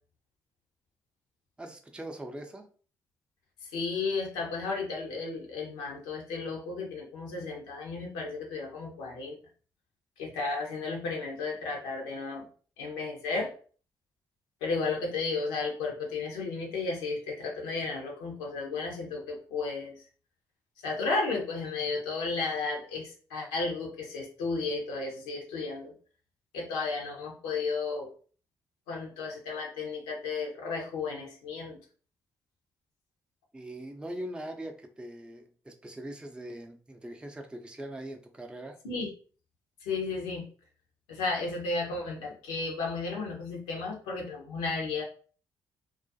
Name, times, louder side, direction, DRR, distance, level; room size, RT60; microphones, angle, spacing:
voice 1, 1.6-2.7 33.5-38.8, right 1 dB, 10° right, 4 dB, 0.5 m, -41 dB
voice 2, 3.7-9.4 10.2-12.5 12.8-13.5 14.6-20.0 20.8-25.9 26.5-28.1 28.9-31.8 38.8-39.1 39.8-40.4 41.1-45.0, left 3 dB, 80° left, 0 dB, 0.6 m, -33 dB
2.3 x 2.2 x 2.6 m, 0.41 s
hypercardioid pair, 45°, 9 cm